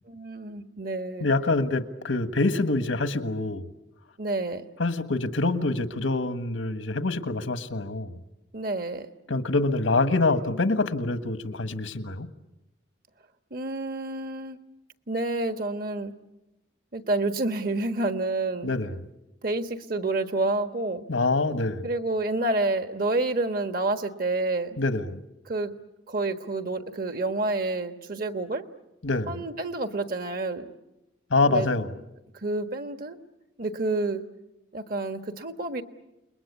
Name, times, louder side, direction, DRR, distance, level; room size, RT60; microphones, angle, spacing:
voice 1, 0.1-1.3 4.2-4.6 8.5-9.1 13.5-14.6 15.1-16.1 16.9-18.7 19.4-21.1 21.8-24.8 25.5-25.7 26.1-28.6 29.3-30.8 31.4-31.7 32.4-33.2 33.6-34.2 34.7-35.8, right 2 dB, 50° right, 8 dB, 1.4 m, -29 dB
voice 2, 1.2-3.7 4.8-8.1 9.3-12.3 18.6-19.0 21.1-21.9 24.8-25.2 29.0-29.4 31.3-31.9, left 3 dB, 85° left, 10 dB, 1.5 m, -25 dB
29.5 x 21.5 x 8.5 m, 0.96 s
head